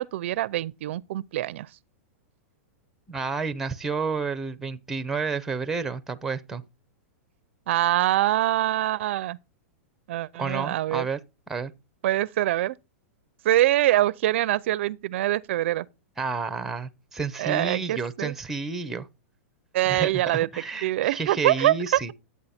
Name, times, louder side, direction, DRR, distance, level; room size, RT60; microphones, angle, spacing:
voice 1, 0.0-1.7 7.7-9.4 10.1-11.1 12.0-12.8 13.4-15.9 17.4-18.3 19.7-20.5 20.8-22.1, right 14 dB, 60° right, 0.5 m, -24 dB
voice 2, 3.1-6.6 10.4-11.2 11.5-11.7 16.2-19.1 19.8-22.1, right 4 dB, 5° right, 0.7 m, -30 dB
12.0 x 8.4 x 4.2 m
supercardioid pair, 155°, 8 cm